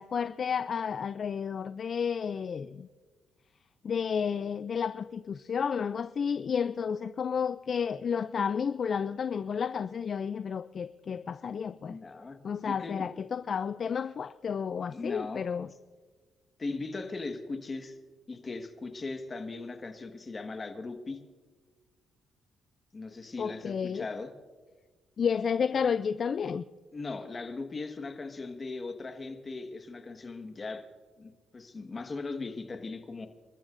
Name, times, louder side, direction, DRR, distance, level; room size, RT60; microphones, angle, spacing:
voice 1, 0.0-2.9 3.8-12.0 12.4-15.7 23.4-24.1 25.2-26.6, left 6 dB, 50° left, 13 dB, 0.4 m, -31 dB
voice 2, 11.8-12.4 12.7-13.1 14.9-15.4 16.6-18.0 18.3-21.2 22.9-24.3 26.9-30.8 31.2-33.3, left 3 dB, 30° left, 6 dB, 1.5 m, -38 dB
29.0 x 13.5 x 2.6 m, 1.4 s
cardioid pair, 90°, 0 cm